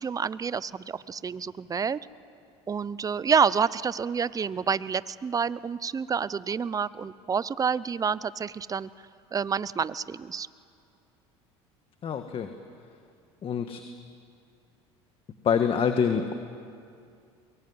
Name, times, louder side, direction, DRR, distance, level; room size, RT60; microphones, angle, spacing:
voice 1, 0.0-2.0 2.7-8.9 9.3-10.5, right 6 dB, 25° right, 18 dB, 0.8 m, -28 dB
voice 2, 12.0-12.5 13.4-13.8 15.4-16.3, left 7 dB, 40° left, 7 dB, 1.6 m, -25 dB
23.0 x 22.5 x 9.7 m, 2.4 s
supercardioid pair, 85°, 14 cm